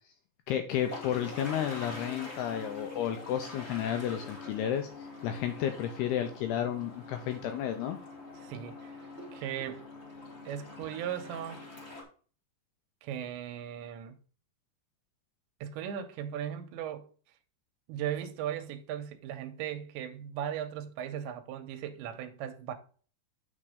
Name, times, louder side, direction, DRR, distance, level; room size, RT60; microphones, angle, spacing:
voice 1, 0.5-8.0, left 10 dB, 85° left, 2.4 m, -32 dB
sound 1, 0.7-12.0, left 3 dB, 55° left, 0.7 m, -45 dB
voice 2, 8.4-9.9 10.5-11.7 13.0-14.2 15.6-17.1 17.9-22.7, right 10 dB, 80° right, 2.9 m, -38 dB
8.8 x 4.3 x 5.0 m
omnidirectional pair, 5.3 m